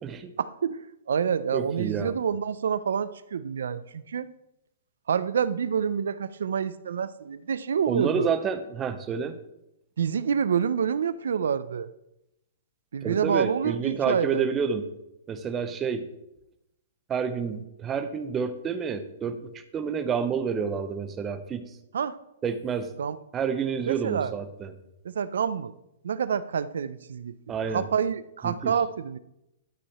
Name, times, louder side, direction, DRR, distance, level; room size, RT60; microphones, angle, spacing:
voice 1, 0.4-4.3 5.1-8.3 10.0-11.9 12.9-14.6 21.9-22.2 23.0-23.2 23.8-24.3 25.0-25.7 26.0-29.2, right 7 dB, 90° right, 15 dB, 0.5 m, -28 dB
voice 2, 1.5-2.2 7.9-9.4 13.0-14.8 15.3-16.1 17.1-21.7 22.4-22.9 23.3-24.7 27.5-27.8 28.4-28.7, right 6 dB, 15° right, 9 dB, 0.6 m, -29 dB
11.5 x 4.8 x 4.3 m, 0.85 s
hypercardioid pair, 170°, 0 cm